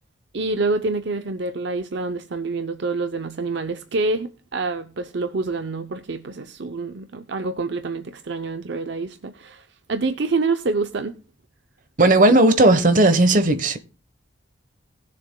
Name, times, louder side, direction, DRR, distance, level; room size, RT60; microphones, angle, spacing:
voice 1, 0.3-11.1, right 3 dB, 60° right, 0.6 m, -27 dB
voice 2, 12.0-13.8, right 2 dB, 40° right, 1.0 m, -15 dB
19.5 x 7.0 x 2.2 m
head